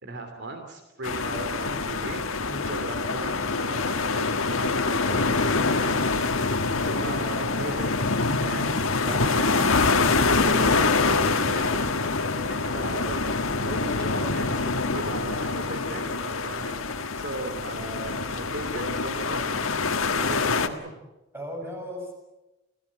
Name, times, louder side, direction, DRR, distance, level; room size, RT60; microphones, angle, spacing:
voice 1, 0.0-2.2 2.6-6.5 6.8-12.0 12.5-16.8 17.2-19.7 20.0-20.9, right 2 dB, 55° right, 6 dB, 3.1 m, -37 dB
sound 1, 1.0-20.7, left 3 dB, 85° left, 1.6 m, -25 dB
voice 2, 9.0-9.3 12.2-12.6 21.3-22.1, equal, 10° right, 2 dB, 7.1 m, -37 dB
28.0 x 17.0 x 8.7 m, 1.0 s
head